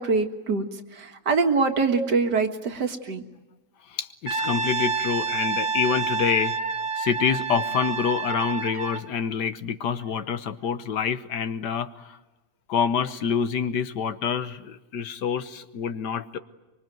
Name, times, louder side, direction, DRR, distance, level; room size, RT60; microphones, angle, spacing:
voice 1, 0.0-3.2, right 4 dB, 70° right, 6 dB, 2.3 m, -24 dB
voice 2, 3.9-6.6 7.0-12.2 12.7-16.4, left 7 dB, 75° left, 12 dB, 1.7 m, -27 dB
Brass instrument, 4.3-9.1, right 4 dB, 45° right, 2.1 m, -28 dB
24.5 x 24.0 x 9.3 m, 1.1 s
omnidirectional pair, 1.8 m